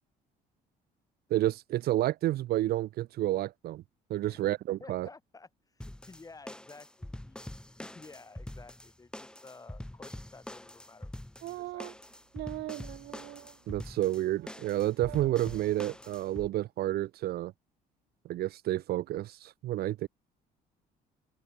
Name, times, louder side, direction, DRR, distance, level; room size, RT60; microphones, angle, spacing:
voice 1, 1.3-3.8 4.1-5.1 13.7-17.5 18.3-20.1, right 15 dB, 65° right, 0.8 m, -30 dB
voice 2, 4.8-7.4 7.8-11.2 11.4-12.1, left 3 dB, 20° left, 6.5 m, -53 dB
sound 1, 5.8-16.5, left 1 dB, 5° left, 2.3 m, -45 dB
sound 2, 11.4-11.9 12.3-13.5 13.9-14.0 14.4-14.7 15.0-15.8, right 18 dB, 80° right, 1.4 m, -42 dB
cardioid pair, 110°, 17 cm